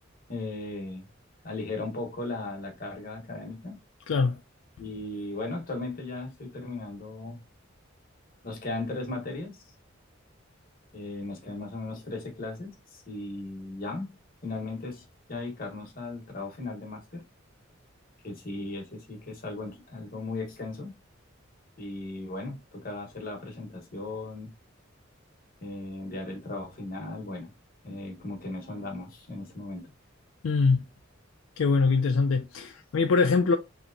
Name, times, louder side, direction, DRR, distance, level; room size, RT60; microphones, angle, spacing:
voice 1, 0.3-1.1 1.4-3.8 4.8-7.4 8.4-9.6 10.9-14.1 14.4-17.2 18.2-20.9 21.8-24.5 25.6-27.5 27.8-29.9, left 2 dB, 50° left, 1.1 m, -37 dB
voice 2, 4.1-4.4 30.4-30.8 31.6-33.6, left 4 dB, 80° left, 0.4 m, -23 dB
3.3 x 2.9 x 2.5 m
head